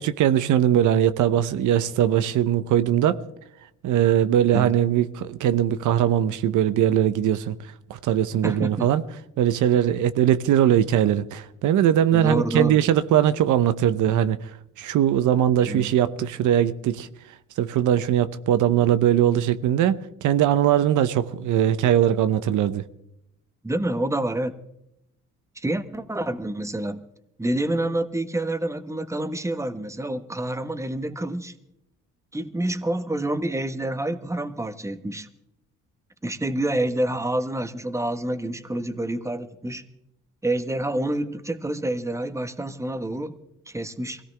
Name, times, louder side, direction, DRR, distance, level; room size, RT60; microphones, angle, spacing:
voice 1, 0.0-3.2 3.8-7.5 8.0-9.0 9.4-14.4 14.8-17.1 17.6-22.8, right 10 dB, 85° right, 0.9 m, -20 dB
voice 2, 8.4-8.9 12.1-12.8 15.6-15.9 23.6-24.5 25.5-27.0 27.4-31.5 32.3-35.3 36.2-39.8 40.4-43.4 43.7-44.2, right 1 dB, 10° right, 1.3 m, -27 dB
23.0 x 17.5 x 3.4 m
cardioid pair, 90°, 30 cm